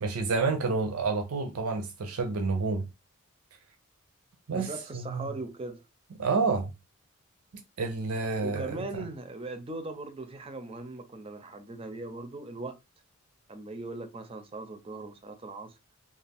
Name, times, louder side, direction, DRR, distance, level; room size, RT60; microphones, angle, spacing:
voice 1, 0.0-2.8 4.5-5.3 6.2-6.7 7.8-9.0, right 4 dB, 90° right, 0.5 m, -29 dB
voice 2, 4.5-5.8 8.4-12.8 13.5-15.8, right 2 dB, 25° right, 0.4 m, -39 dB
2.3 x 2.3 x 3.4 m
head